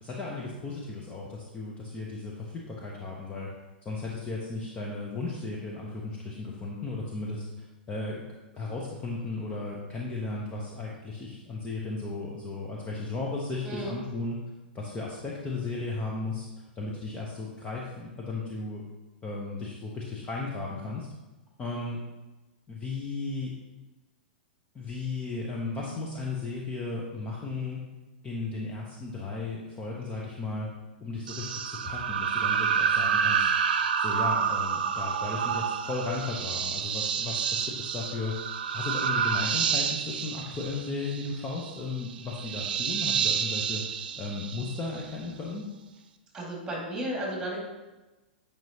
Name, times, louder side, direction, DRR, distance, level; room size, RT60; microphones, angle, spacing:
voice 1, 0.0-3.5 3.8-8.2 8.5-14.4 14.7-16.5 16.8-18.8 19.2-21.1 21.6-22.0 22.7-23.5 24.7-27.8 28.2-30.7 31.0-33.5 34.0-38.3 38.7-45.6, left 3 dB, 20° left, -3 dB, 0.9 m, -35 dB
voice 2, 13.6-14.0 46.3-47.6, right 1 dB, 10° right, -2 dB, 2.2 m, -33 dB
sound 1, 31.3-45.1, right 7 dB, 55° right, 0.5 m, -29 dB
9.1 x 5.1 x 2.9 m, 1.1 s
figure-of-eight pair, 100°, 6 cm